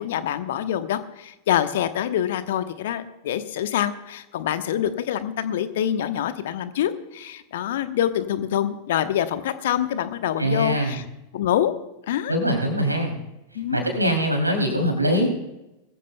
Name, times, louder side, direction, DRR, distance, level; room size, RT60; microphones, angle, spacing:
voice 1, 0.0-11.0 11.3-11.7 12.1-12.3 13.5-13.8, left 10 dB, 55° left, 12 dB, 0.9 m, -25 dB
voice 2, 10.4-11.0 12.3-13.1 13.7-15.5, equal, 85° right, 3 dB, 2.9 m, -23 dB
21.0 x 15.0 x 2.2 m, 0.95 s
figure-of-eight pair, 90°, 0 cm